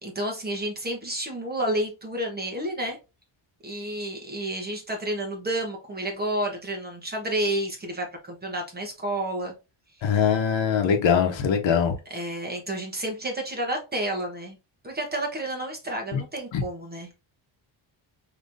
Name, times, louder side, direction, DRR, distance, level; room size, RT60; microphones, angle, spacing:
voice 1, 0.0-3.0 3.6-9.5 10.0-10.1 12.1-14.6 14.8-17.1, right 1 dB, 20° right, 1.0 m, -30 dB
voice 2, 10.0-12.0 16.1-16.2 16.5-16.6, left 7 dB, 65° left, 1.0 m, -22 dB
5.2 x 3.0 x 2.6 m
wide cardioid pair, 170°, 49 cm